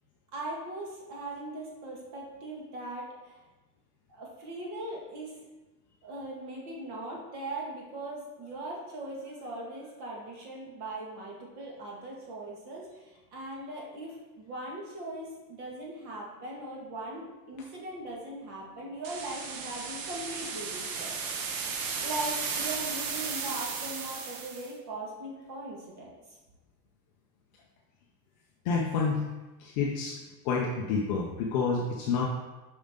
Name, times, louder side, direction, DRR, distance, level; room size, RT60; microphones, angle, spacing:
voice 1, 0.3-3.4 4.1-5.5 6.0-21.4 22.0-26.4, right 1 dB, 35° right, -3 dB, 1.8 m, -40 dB
sound 1, 19.0-24.7, right 5 dB, 55° right, 1.0 m, -35 dB
voice 2, 28.7-29.2 29.6-30.2 30.4-32.3, left 5 dB, 30° left, -1 dB, 0.5 m, -28 dB
6.9 x 5.4 x 3.7 m, 1.1 s
supercardioid pair, 155°, 48 cm